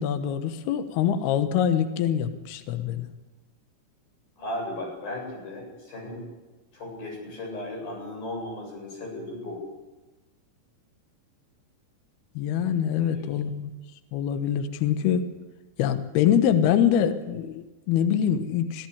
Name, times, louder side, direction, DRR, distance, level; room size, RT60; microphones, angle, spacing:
voice 1, 0.0-3.1 12.4-13.7 14.1-15.3 15.8-18.9, left 9 dB, 70° left, 8 dB, 2.9 m, -24 dB
voice 2, 4.4-6.2 6.7-9.6 13.0-13.3, left 1 dB, 55° left, 0 dB, 9.7 m, -36 dB
25.0 x 15.0 x 8.6 m, 1.2 s
omnidirectional pair, 5.1 m